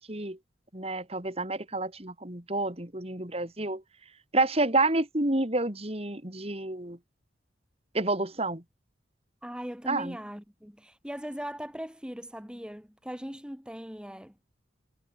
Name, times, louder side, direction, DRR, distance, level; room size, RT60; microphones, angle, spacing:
voice 1, 0.7-3.8 4.3-7.0 7.9-8.6 9.9-10.2, right 2 dB, 30° right, 2.6 m, -29 dB
voice 2, 9.4-14.4, equal, 5° right, 2.0 m, -39 dB
head